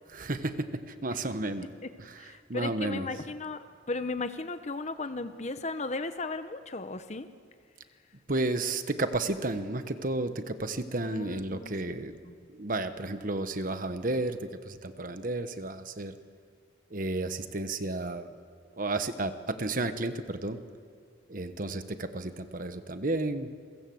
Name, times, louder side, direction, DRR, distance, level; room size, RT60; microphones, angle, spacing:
voice 1, 0.1-1.7 2.0-3.1 8.3-12.2 12.5-16.1 16.9-18.3 18.8-20.6 21.3-23.5, right 2 dB, 50° right, 9 dB, 1.3 m, -32 dB
voice 2, 2.2-7.3 11.1-11.9 12.2-12.3, left 3 dB, 40° left, 10 dB, 1.0 m, -36 dB
29.0 x 22.0 x 7.9 m, 2.1 s
head